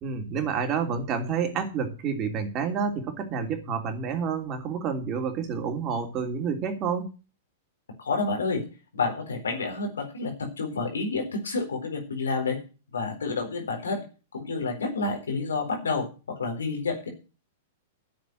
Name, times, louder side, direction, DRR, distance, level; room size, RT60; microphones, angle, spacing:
voice 1, 0.0-7.1, right 6 dB, 35° right, 4 dB, 3.2 m, -29 dB
voice 2, 8.0-8.6 8.9-12.6 12.9-14.0 14.3-17.1, left 3 dB, 85° left, 4 dB, 4.2 m, -29 dB
10.0 x 8.0 x 7.9 m, 0.33 s
hypercardioid pair, 110°, 0 cm